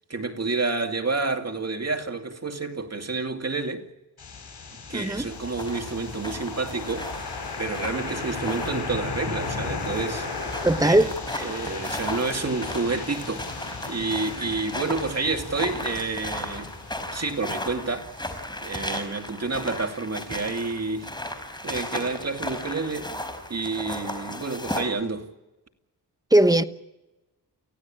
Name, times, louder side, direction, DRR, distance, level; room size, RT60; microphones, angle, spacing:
voice 1, 0.1-3.9 4.9-11.1 11.4-16.7 17.1-21.1 21.6-23.2 23.5-25.3, right 3 dB, 40° right, 2.5 m, -29 dB
sound 1, 4.2-18.1, left 4 dB, 70° left, 7.9 m, -36 dB
voice 2, 4.9-5.3 10.6-11.5 26.3-26.6, right 1 dB, 10° right, 1.1 m, -20 dB
sound 2, 5.3-24.8, left 1 dB, 10° left, 4.8 m, -36 dB
29.5 x 15.5 x 8.9 m
wide cardioid pair, 85°, 40 cm